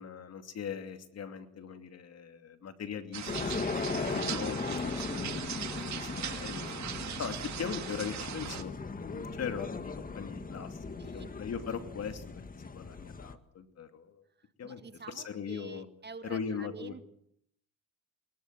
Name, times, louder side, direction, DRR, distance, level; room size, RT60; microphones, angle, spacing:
voice 1, 0.0-6.7 7.2-14.2 14.6-14.8 15.1-15.9 16.2-16.9, left 7 dB, 55° left, 8 dB, 2.7 m, -40 dB
sound 1, 3.1-8.6, right 10 dB, 65° right, 2.1 m, -39 dB
sound 2, 3.3-13.3, left 4 dB, 30° left, 1.7 m, -38 dB
voice 2, 3.5-4.3 11.0-11.3 14.4-17.0, right 4 dB, 35° right, 10 dB, 1.8 m, -48 dB
23.0 x 21.0 x 7.6 m, 0.71 s
cardioid pair, 90°, 30 cm